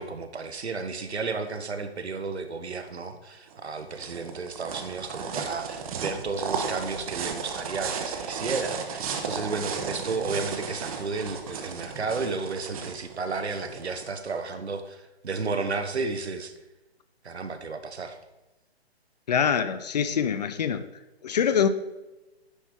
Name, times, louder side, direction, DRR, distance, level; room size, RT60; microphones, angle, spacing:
voice 1, 0.0-16.5 17.2-18.2, right 4 dB, 90° right, 1.1 m, -33 dB
sound 1, 3.5-14.4, right 6 dB, 35° right, 0.9 m, -35 dB
voice 2, 19.3-20.8 21.2-21.7, left 7 dB, 40° left, 0.5 m, -24 dB
10.0 x 3.4 x 5.9 m
hypercardioid pair, 145°, 32 cm